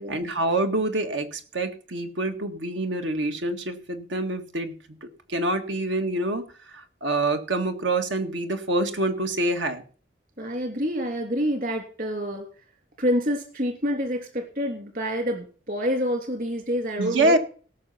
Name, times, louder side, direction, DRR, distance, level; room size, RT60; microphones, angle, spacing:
voice 1, 0.0-5.0 5.3-6.4 6.7-9.8 17.0-17.4, right 2 dB, 85° right, 6 dB, 1.9 m, -26 dB
voice 2, 10.4-12.5 13.0-17.4, equal, 45° right, 4 dB, 3.1 m, -27 dB
18.0 x 6.6 x 5.7 m, 0.40 s
head